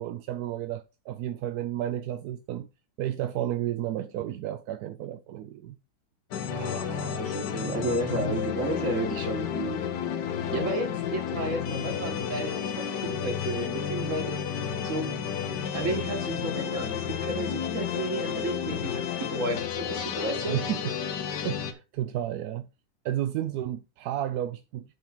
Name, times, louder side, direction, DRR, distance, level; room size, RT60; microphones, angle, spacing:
voice 1, 0.0-2.7 3.0-5.8 20.5-20.9 21.3-22.7 23.0-24.8, right 12 dB, 70° right, 1.0 m, -32 dB
sound 1, 6.3-21.7, left 8 dB, 75° left, 1.6 m, -31 dB
voice 2, 6.5-9.9 10.5-14.4 14.8-15.1 15.7-19.0 19.3-20.6, right 2 dB, 45° right, 2.2 m, -32 dB
8.8 x 3.6 x 6.0 m
omnidirectional pair, 1.9 m